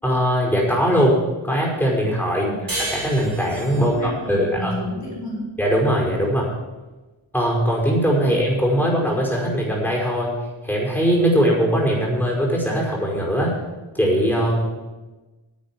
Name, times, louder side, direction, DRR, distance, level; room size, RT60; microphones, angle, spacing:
voice 1, 0.0-1.2 1.4-2.5 2.9-4.7 5.6-6.5 7.3-10.3 10.6-13.5 13.9-14.6, equal, 5° left, -3 dB, 5.3 m, -20 dB
voice 2, 2.4-2.7 3.7-5.5, left 1 dB, 85° left, -4 dB, 4.3 m, -31 dB
sound 1, 2.7-5.9, right 2 dB, 40° right, 3.5 m, -33 dB
10.5 x 8.8 x 7.5 m, 1.2 s
wide cardioid pair, 75°, 50 cm